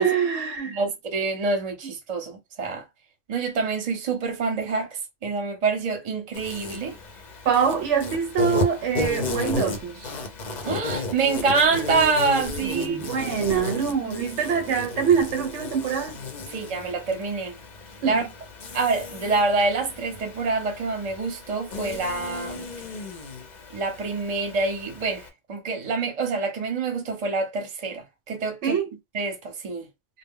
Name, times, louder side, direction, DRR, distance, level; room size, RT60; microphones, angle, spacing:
voice 1, 0.0-0.8 7.4-10.2 12.6-16.2 18.0-18.3 28.6-28.9, right 7 dB, 75° right, 0.9 m, -24 dB
voice 2, 0.7-2.8 3.3-7.0 10.6-13.3 16.5-17.5 18.0-18.2 18.7-22.6 23.7-28.8 29.1-29.9, right 4 dB, 35° right, 0.7 m, -26 dB
Insect, 6.3-25.3, left 3 dB, 50° left, 0.6 m, -34 dB
2.1 x 2.0 x 3.6 m
omnidirectional pair, 1.3 m